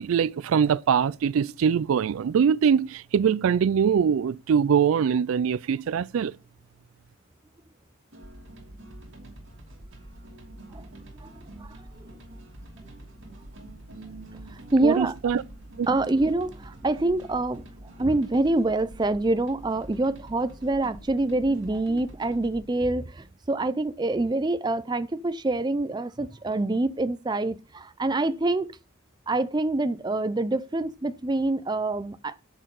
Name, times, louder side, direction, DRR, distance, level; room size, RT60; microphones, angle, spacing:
voice 1, 0.0-6.4 14.8-15.4 15.8-15.9, right 7 dB, 80° right, 0.4 m, -23 dB
sound 1, 8.1-22.7, right 1 dB, 65° right, 2.7 m, -45 dB
voice 2, 14.5-15.1 15.9-17.6 18.0-28.8 29.3-32.4, right 2 dB, 20° right, 0.4 m, -26 dB
10.0 x 6.6 x 4.0 m
head